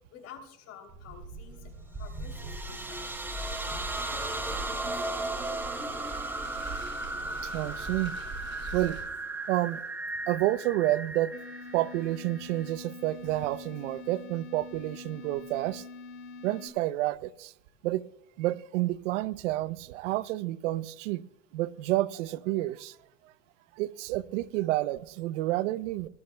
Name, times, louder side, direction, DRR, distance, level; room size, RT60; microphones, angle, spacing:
voice 1, 0.1-1.7 2.0-3.1 3.4-6.0, left 6 dB, 40° left, 3.0 m, -51 dB
Car, 0.9-9.0, right 3 dB, 30° right, 5.2 m, -43 dB
sound 1, 2.1-12.7, right 2 dB, 5° right, 0.6 m, -36 dB
voice 2, 7.4-8.1 8.6-9.0 9.5-9.8 10.3-11.3 11.7-15.8 16.4-17.5 17.8-18.0 18.4-21.2 21.5-23.0 23.2-23.3 23.8-26.1, right 16 dB, 75° right, 0.6 m, -29 dB
sound 2, 11.3-16.7, left 4 dB, 85° left, 2.9 m, -45 dB
19.0 x 12.5 x 2.2 m
supercardioid pair, 130°, 37 cm